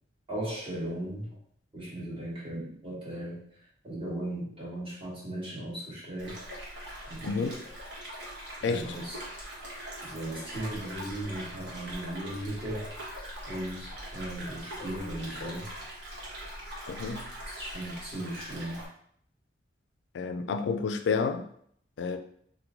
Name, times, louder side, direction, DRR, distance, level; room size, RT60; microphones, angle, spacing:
voice 1, 0.3-1.3 1.7-3.4 3.8-6.4 7.1-7.5 8.6-9.2 10.0-12.9 13.5-15.7 17.5-18.8, right 1 dB, 30° right, -7 dB, 1.0 m, -37 dB
sound 1, 6.2-18.9, equal, 70° right, 1.1 m, -42 dB
voice 2, 7.2-7.6 8.6-8.9 16.9-17.3 20.1-21.5 22.0-22.2, left 5 dB, 85° left, 7 dB, 0.3 m, -30 dB
3.0 x 2.2 x 3.5 m, 0.65 s
head